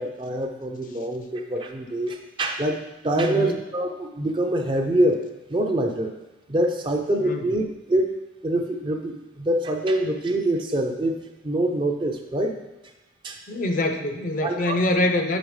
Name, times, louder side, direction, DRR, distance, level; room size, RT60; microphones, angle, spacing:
voice 1, 0.0-5.2 5.5-6.1 6.5-7.6 7.9-8.1 8.4-11.2 11.4-12.6 13.2-13.4 14.4-14.8, right 1 dB, 25° right, 4 dB, 0.4 m, -25 dB
voice 2, 3.2-3.6 7.2-7.4 13.5-15.4, left 1 dB, 45° left, 5 dB, 0.5 m, -24 dB
7.7 x 4.9 x 3.2 m, 1.0 s
head